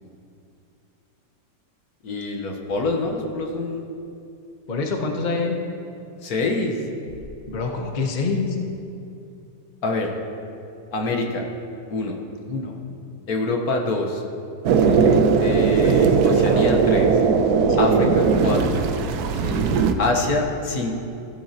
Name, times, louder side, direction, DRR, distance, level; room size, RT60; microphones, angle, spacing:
voice 1, 2.0-3.8 6.2-6.8 9.8-10.1 10.9-11.4 11.9-12.2 13.3-14.2 15.4-17.2 17.8-18.6 20.0-21.1, left 2 dB, 55° left, 2 dB, 1.4 m, -25 dB
voice 2, 4.7-5.6 7.5-8.6 12.5-12.8 14.8-15.3 17.7-18.1 19.3-19.8, left 4 dB, 40° left, 2 dB, 0.6 m, -27 dB
sound 1, 14.6-19.9, right 5 dB, 70° right, 1.0 m, -18 dB
16.0 x 11.0 x 2.8 m, 2.7 s
omnidirectional pair, 2.0 m